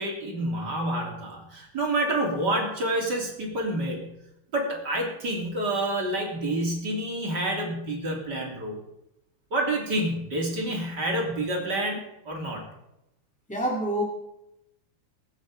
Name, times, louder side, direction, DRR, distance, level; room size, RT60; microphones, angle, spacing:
voice 1, 0.0-4.1 4.5-8.8 9.5-12.6, right 1 dB, 30° right, -1 dB, 3.3 m, -28 dB
voice 2, 13.5-14.0, right 1 dB, 5° left, -2 dB, 1.2 m, -26 dB
22.0 x 9.6 x 5.0 m, 0.85 s
omnidirectional pair, 4.4 m